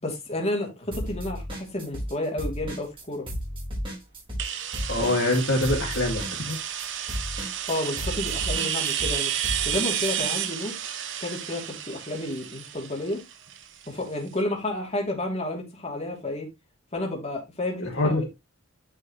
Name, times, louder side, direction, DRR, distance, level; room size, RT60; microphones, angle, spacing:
voice 1, 0.0-3.2 7.7-9.3 9.6-10.8 11.2-13.2 13.9-16.5 16.9-18.3, left 1 dB, 30° left, 3.0 m, -31 dB
sound 1, 0.9-2.1 2.4-10.3, equal, 25° right, 4.5 m, -33 dB
sound 2, 4.4-14.0, right 10 dB, 60° right, 1.1 m, -31 dB
voice 2, 4.9-6.6 17.8-18.2, left 2 dB, 60° left, 2.1 m, -24 dB
9.9 x 5.6 x 3.1 m
head